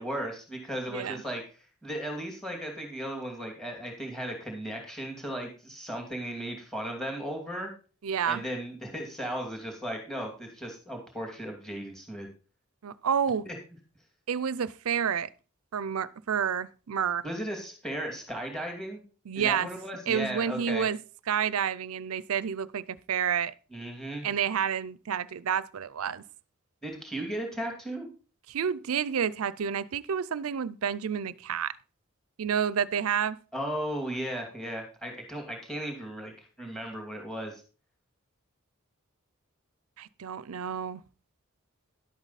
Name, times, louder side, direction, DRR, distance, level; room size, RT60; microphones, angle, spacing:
voice 1, 0.0-1.4 1.8-7.7 8.3-12.3 13.5-13.6 17.2-19.0 19.3-20.9 23.7-24.3 26.8-28.1 33.5-37.6, equal, ahead, 2.6 m, -36 dB
voice 2, 0.9-1.2 8.0-8.4 12.8-13.5 14.3-15.3 15.7-17.2 19.3-19.7 20.1-21.0 21.3-23.5 24.2-26.2 28.5-31.7 32.4-33.4 40.0-41.0, right 7 dB, 90° right, 0.5 m, -29 dB
11.5 x 8.2 x 4.1 m
head